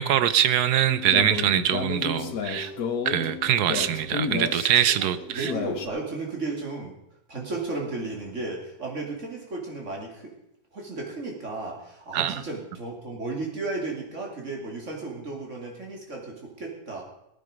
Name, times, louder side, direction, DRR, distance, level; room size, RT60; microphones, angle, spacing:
voice 1, 0.0-2.7 3.0-5.5 12.1-12.4, right 10 dB, 70° right, 14 dB, 1.3 m, -23 dB
sound 1, 0.9-5.9, left 6 dB, 60° left, 1.5 m, -32 dB
voice 2, 5.0-7.0 7.3-10.3 10.7-17.0, right 3 dB, 40° right, 0 dB, 3.3 m, -34 dB
19.0 x 9.0 x 5.1 m, 0.84 s
omnidirectional pair, 1.9 m